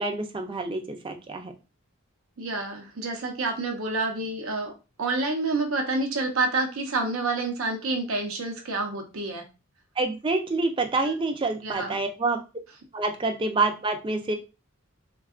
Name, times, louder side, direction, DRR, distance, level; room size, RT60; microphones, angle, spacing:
voice 1, 0.0-1.5 10.0-12.4 12.9-14.3, right 3 dB, 25° right, 5 dB, 0.4 m, -27 dB
voice 2, 2.4-4.7 5.0-9.4 11.0-11.1 11.6-12.0, right 3 dB, 75° right, 3 dB, 0.7 m, -28 dB
3.5 x 2.3 x 2.4 m, 0.29 s
head